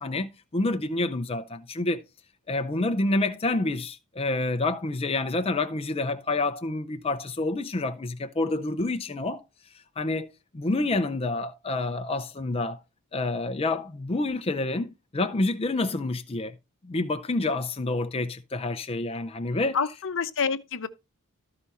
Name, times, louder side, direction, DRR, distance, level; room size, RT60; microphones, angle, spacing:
voice 1, 0.0-2.0 2.5-9.4 10.0-12.8 13.1-16.6 16.8-19.8, left 2 dB, 25° left, 0.6 m, -28 dB
voice 2, 19.7-20.9, left 5 dB, 60° left, 0.8 m, -27 dB
13.0 x 4.9 x 4.2 m
head